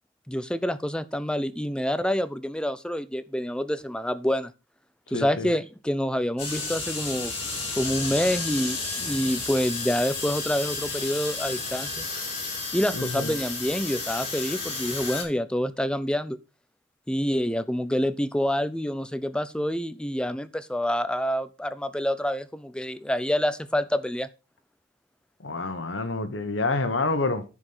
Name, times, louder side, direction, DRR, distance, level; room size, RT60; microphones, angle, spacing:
voice 1, 0.3-4.5 5.1-7.3 7.8-12.1 12.7-16.4 17.1-24.3, equal, 5° left, 0.6 m, -27 dB
voice 2, 5.1-5.5 12.9-13.4 25.4-27.4, left 3 dB, 85° left, 1.3 m, -28 dB
sound 1, 6.4-15.2, left 3 dB, 30° left, 5.7 m, -32 dB
10.5 x 5.0 x 5.6 m
head